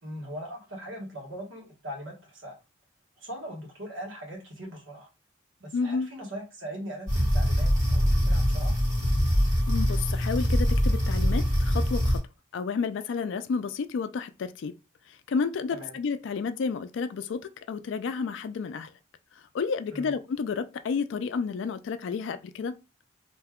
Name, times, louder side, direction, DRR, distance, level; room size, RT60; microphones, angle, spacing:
voice 1, 0.0-2.5 3.2-5.1 5.6-8.7 15.7-16.0 19.9-20.1, equal, 75° right, 1.3 m, -40 dB
voice 2, 5.7-6.1 9.7-12.2 12.5-14.7 15.1-18.9 19.5-22.7, left 5 dB, 65° left, 0.3 m, -31 dB
sound 1, 7.1-12.2, equal, 35° right, 1.2 m, -23 dB
2.7 x 2.2 x 3.5 m
head